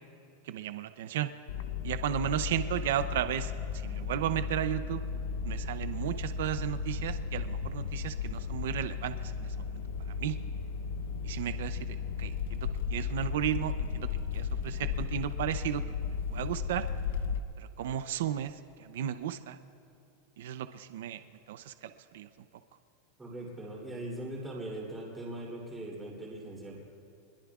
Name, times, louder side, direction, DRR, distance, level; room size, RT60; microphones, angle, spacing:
voice 1, 0.4-1.3 1.8-3.5 3.8-5.0 5.4-9.8 10.1-10.4 11.2-15.8 16.3-16.8 17.6-19.6 20.4-21.2 21.5-22.3, right 11 dB, 70° right, 11 dB, 0.6 m, -34 dB
sound 1, 1.5-17.4, left 6 dB, 80° left, 0.8 m, -35 dB
voice 2, 23.2-26.8, right 1 dB, 10° right, -4 dB, 3.1 m, -40 dB
25.0 x 22.0 x 2.4 m, 2.6 s
supercardioid pair, 175°, 0 cm